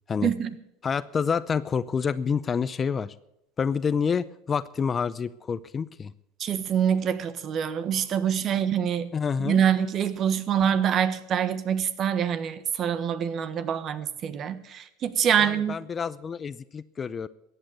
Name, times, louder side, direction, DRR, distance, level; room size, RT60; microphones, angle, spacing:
voice 1, 0.8-3.1 3.6-6.1 9.1-9.6 15.4-17.3, left 6 dB, 30° left, 0.6 m, -28 dB
voice 2, 6.4-9.1 9.4-15.7, right 8 dB, 40° right, 1.3 m, -25 dB
14.5 x 9.0 x 8.4 m
hypercardioid pair, 95°, 0 cm